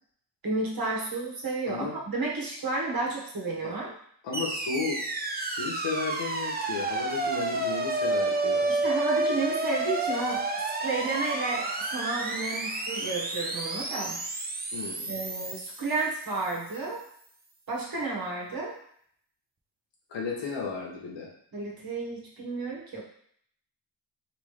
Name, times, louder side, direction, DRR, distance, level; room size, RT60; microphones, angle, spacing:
voice 1, 0.4-3.9 8.7-10.5 10.8-14.2 15.1-17.0 17.7-18.8 21.5-23.0, right 3 dB, 50° right, -2 dB, 1.3 m, -32 dB
voice 2, 4.2-5.0 5.3-8.7 14.7-15.2 20.1-21.3, left 4 dB, 70° left, -2 dB, 1.1 m, -34 dB
sound 1, 4.3-16.6, right 2 dB, 20° right, 0.6 m, -30 dB
3.0 x 3.0 x 3.2 m, 0.63 s
supercardioid pair, 45°, 45 cm